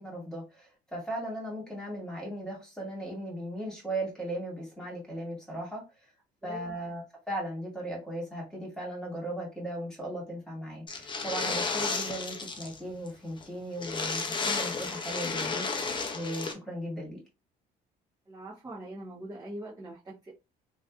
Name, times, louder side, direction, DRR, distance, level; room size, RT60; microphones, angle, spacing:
voice 1, 0.0-5.8 6.4-15.7 16.1-17.2, right 1 dB, 5° left, 1.9 m, -37 dB
voice 2, 6.4-6.7 18.3-20.3, right 1 dB, 20° right, 1.1 m, -42 dB
sound 1, 10.9-12.8 13.1-13.2 13.4-13.5 13.8-16.5, left 4 dB, 30° left, 0.6 m, -32 dB
3.2 x 2.6 x 2.4 m
cardioid pair, 110°, 17 cm